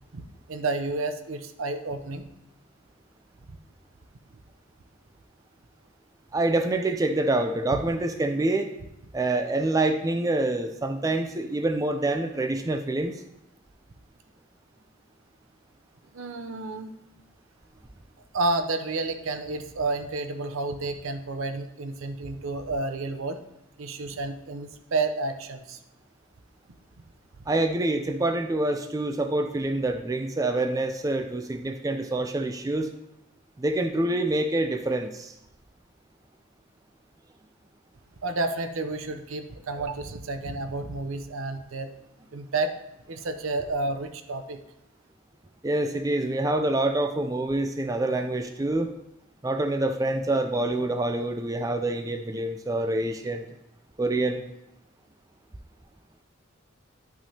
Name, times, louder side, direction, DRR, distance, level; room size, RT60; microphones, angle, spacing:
voice 1, 0.1-2.3 7.8-7.9 16.1-16.9 18.3-23.4 23.8-25.8 38.2-41.9 42.3-42.7 43.1-44.6, right 2 dB, 75° right, 8 dB, 0.6 m, -30 dB
voice 2, 6.3-8.7 9.1-13.2 27.5-32.9 33.6-35.3 45.6-48.9 49.4-53.5 54.0-54.4, right 2 dB, 15° right, 6 dB, 0.3 m, -26 dB
11.0 x 5.9 x 2.8 m, 0.86 s
head